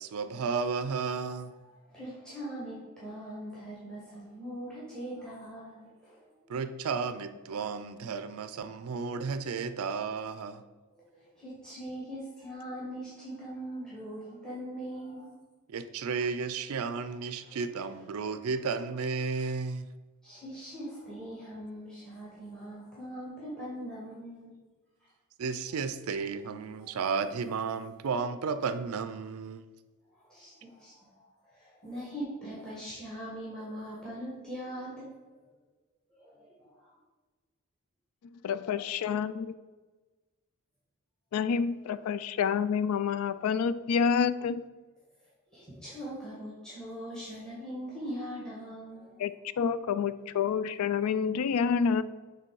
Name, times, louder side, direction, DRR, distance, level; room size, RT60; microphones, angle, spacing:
voice 1, 0.0-1.5 6.5-10.6 15.7-19.9 25.4-29.6, right 5 dB, 75° right, 11 dB, 0.4 m, -33 dB
voice 2, 1.9-6.6 11.1-15.3 17.4-17.6 20.2-24.5 26.8-26.9 30.1-31.1 31.4-35.1 36.1-36.9 38.6-39.0 41.8-42.0 45.5-49.2, equal, 5° left, -7 dB, 1.4 m, -41 dB
voice 3, 38.3-39.5 41.3-44.6 49.2-49.3 49.6-52.0, left 6 dB, 85° left, 15 dB, 0.3 m, -28 dB
6.8 x 3.3 x 4.7 m, 1.3 s
head